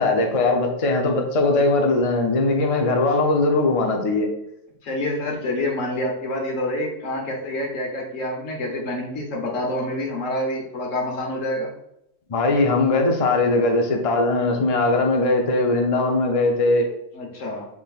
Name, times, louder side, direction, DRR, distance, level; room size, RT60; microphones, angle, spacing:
voice 1, 0.0-4.3 12.3-16.9, left 2 dB, 40° left, 3 dB, 0.5 m, -20 dB
voice 2, 4.8-11.7 17.1-17.7, left 1 dB, 85° left, 1 dB, 1.4 m, -27 dB
5.8 x 3.6 x 2.4 m, 0.78 s
omnidirectional pair, 1.3 m